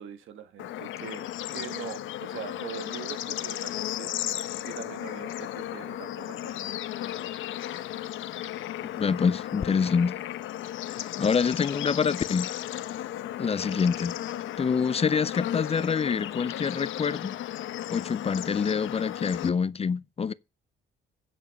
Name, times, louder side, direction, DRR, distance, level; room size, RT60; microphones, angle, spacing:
voice 1, 0.0-4.4 4.6-6.7, right 9 dB, 75° right, 1.6 m, -42 dB
Bird / Insect / Frog, 0.6-19.5, left 12 dB, 85° left, 0.8 m, -35 dB
voice 2, 8.8-10.2 10.9-12.5 13.4-14.1 14.6-17.4 17.9-20.3, left 6 dB, 30° left, 0.5 m, -26 dB
14.0 x 5.3 x 5.4 m
cardioid pair, 90°, 20 cm